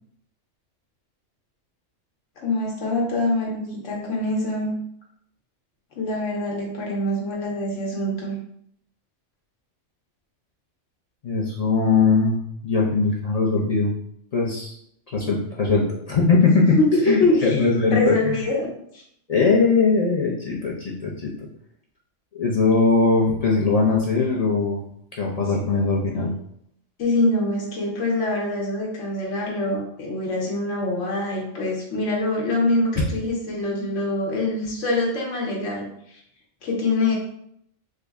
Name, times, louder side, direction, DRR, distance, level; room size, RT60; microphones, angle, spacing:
voice 1, 2.4-4.7 5.9-8.3 16.8-19.0 27.0-36.2 36.6-37.1, left 2 dB, 85° left, -2 dB, 1.1 m, -24 dB
voice 2, 11.2-13.9 14.3-14.7 15.1-16.8 17.0-18.4 19.3-21.5 22.3-24.8 25.1-26.3, left 4 dB, 60° left, -3 dB, 0.4 m, -20 dB
3.7 x 2.1 x 3.4 m, 0.71 s
omnidirectional pair, 1.3 m